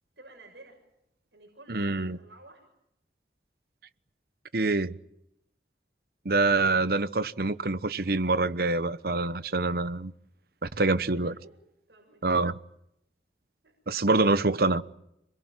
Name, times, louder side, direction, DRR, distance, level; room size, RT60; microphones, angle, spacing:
voice 1, 0.2-0.8 1.3-2.7 10.8-11.5 11.9-12.3 13.6-13.7 14.0-14.4, right 2 dB, 75° right, 6.6 m, -53 dB
voice 2, 1.7-2.2 4.5-5.0 6.2-10.1 10.6-11.3 12.2-12.6 13.9-14.8, right 3 dB, 60° right, 1.0 m, -25 dB
27.0 x 21.5 x 9.0 m
head